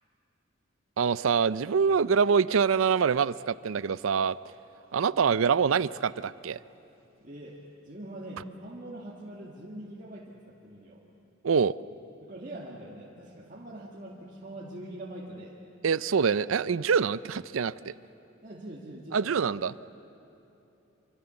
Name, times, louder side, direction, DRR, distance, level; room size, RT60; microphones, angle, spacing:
voice 1, 1.0-4.4 4.9-6.6 11.4-11.7 15.8-17.9 19.1-19.7, right 6 dB, 80° right, 18 dB, 0.5 m, -25 dB
voice 2, 7.2-7.6 7.9-11.0 12.3-15.5 18.4-19.6, right 1 dB, 40° right, -5 dB, 2.2 m, -43 dB
26.5 x 25.0 x 7.0 m, 2.9 s
head